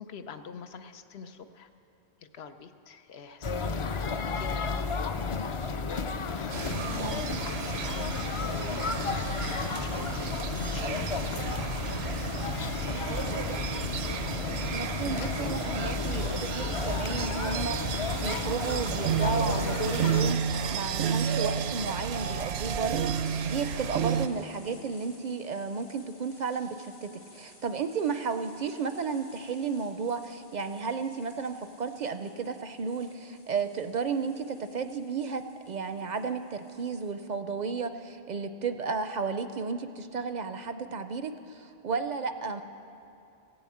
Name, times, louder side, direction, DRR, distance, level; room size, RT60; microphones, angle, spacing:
voice 1, 0.0-1.7 2.2-4.1 4.4-5.9 6.2-12.7, left 6 dB, 85° left, 9 dB, 0.9 m, -46 dB
sound 1, 3.4-20.4, left 4 dB, 45° left, 0.4 m, -33 dB
sound 2, 6.5-24.3, right 7 dB, 85° right, 0.9 m, -32 dB
voice 2, 14.7-23.1 23.4-42.6, right 5 dB, 55° right, 9 dB, 0.5 m, -33 dB
sound 3, 19.7-37.1, left 2 dB, 60° left, 2.0 m, -58 dB
16.0 x 7.2 x 8.5 m, 2.7 s
omnidirectional pair, 1.0 m